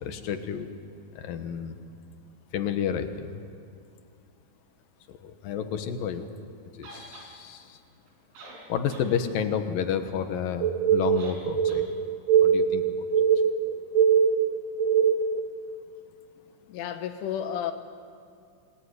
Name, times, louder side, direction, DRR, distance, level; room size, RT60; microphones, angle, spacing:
voice 1, 0.0-0.7 1.1-1.8 2.5-3.4 5.1-6.3 6.8-7.8 8.7-11.9 12.4-13.1, left 8 dB, 65° left, 8 dB, 2.4 m, -31 dB
sound 1, 6.8-7.3 8.1-8.2 8.4-9.1 9.5-9.6 11.2-11.4 11.7-11.8, right 2 dB, 90° right, 6.8 m, -45 dB
sound 2, 10.6-15.4, right 7 dB, 60° right, 2.7 m, -22 dB
voice 2, 16.7-17.7, left 9 dB, 80° left, 7 dB, 3.7 m, -31 dB
28.5 x 21.0 x 9.8 m, 2.4 s
omnidirectional pair, 5.5 m